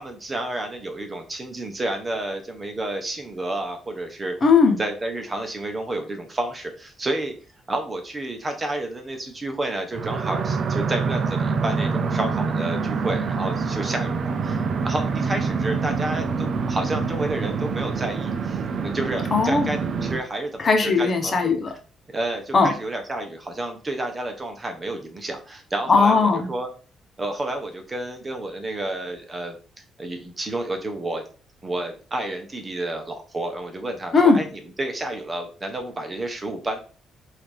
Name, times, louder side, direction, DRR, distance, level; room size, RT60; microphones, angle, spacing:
voice 1, 0.0-4.4 4.8-7.3 7.7-21.3 22.1-26.7 27.2-29.6 30.0-31.2 31.6-36.8, right 1 dB, 25° right, 5 dB, 1.0 m, -30 dB
voice 2, 4.4-4.8 19.3-19.7 20.6-21.7 22.5-22.7 25.9-26.5 34.1-34.4, left 4 dB, 40° left, 4 dB, 1.1 m, -18 dB
sound 1, 9.9-20.2, right 5 dB, 55° right, 0.5 m, -26 dB
5.5 x 2.8 x 3.5 m, 0.38 s
cardioid pair, 90°, 0 cm